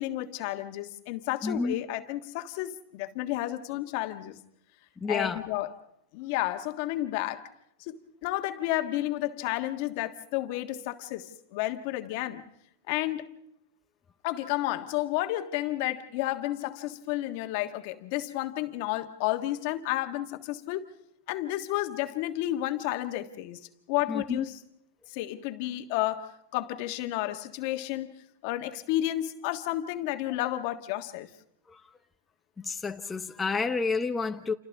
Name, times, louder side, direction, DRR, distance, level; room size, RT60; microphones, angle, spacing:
voice 1, 0.0-4.4 5.1-5.7 6.1-7.5 7.8-12.4 12.9-13.3 14.2-21.0 21.3-23.6 23.9-24.6 25.1-28.1 28.4-31.3, left 15 dB, 60° left, 1.6 m, -31 dB
voice 2, 1.4-1.8 5.0-5.4 24.1-24.4 32.6-34.5, left 4 dB, 15° left, 0.9 m, -29 dB
29.5 x 28.5 x 3.6 m
supercardioid pair, 125°, 0 cm